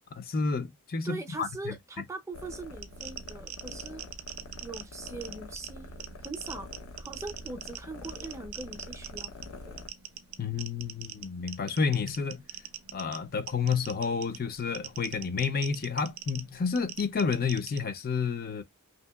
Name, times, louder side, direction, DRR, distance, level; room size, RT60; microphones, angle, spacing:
voice 1, 0.3-1.7 10.4-12.4 12.9-18.6, left 5 dB, 45° left, 0.4 m, -30 dB
voice 2, 1.0-4.0 4.6-5.9 6.2-6.7 7.0-9.3 9.6-9.8, right 3 dB, 15° right, 0.5 m, -41 dB
sound 1, 2.3-9.9, left 2 dB, 90° left, 0.7 m, -45 dB
sound 2, 2.7-17.8, right 11 dB, 70° right, 0.5 m, -44 dB
2.9 x 2.7 x 2.2 m
head